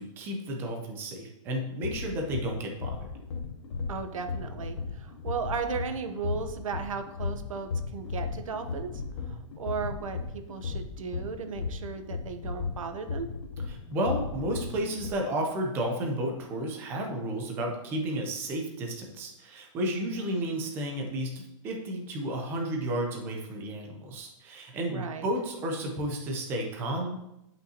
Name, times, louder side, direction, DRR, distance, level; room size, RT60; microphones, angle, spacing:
voice 1, 0.0-3.1 13.7-27.2, right 1 dB, 10° right, 2 dB, 0.7 m, -32 dB
sound 1, 1.5-15.1, left 4 dB, 60° left, 1.0 m, -36 dB
voice 2, 3.9-13.3 19.9-20.3 24.9-25.3, right 5 dB, 80° right, 8 dB, 0.9 m, -36 dB
10.5 x 5.6 x 2.9 m, 0.86 s
hypercardioid pair, 175°, 17 cm